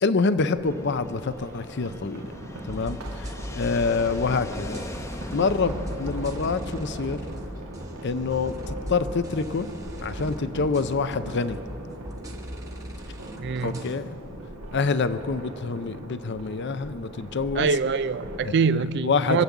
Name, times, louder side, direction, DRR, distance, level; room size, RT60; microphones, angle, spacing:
voice 1, 0.0-2.2 2.7-3.3 3.5-4.8 5.3-7.2 8.0-9.7 10.0-11.6 13.6-14.1 14.7-17.7 18.4-18.5 19.0-19.4, left 4 dB, 55° left, 12 dB, 0.6 m, -26 dB
sound 1, 0.5-18.4, right 1 dB, 80° right, 1.8 m, -41 dB
Fixed-wing aircraft airplane, 0.6-16.4, left 1 dB, 15° left, 0.8 m, -44 dB
sound 2, 2.7-14.0, equal, 15° right, 1.1 m, -38 dB
voice 2, 13.4-13.8 17.5-19.4, right 5 dB, 50° right, 15 dB, 0.4 m, -24 dB
24.0 x 8.2 x 7.2 m, 2.9 s
head